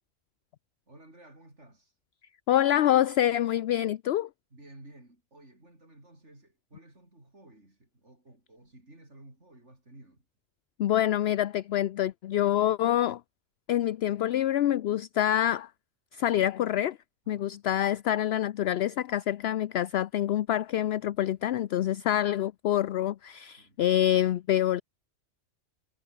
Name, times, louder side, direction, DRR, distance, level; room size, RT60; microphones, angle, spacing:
voice 1, 0.9-1.9 4.5-10.3 17.2-17.6 23.6-23.8, right 1 dB, 75° right, 7.2 m, -54 dB
voice 2, 2.5-4.3 10.8-13.2 13.7-15.7 16.1-17.0 17.3-24.8, left 12 dB, 65° left, 0.8 m, -26 dB
omnidirectional pair, 1.2 m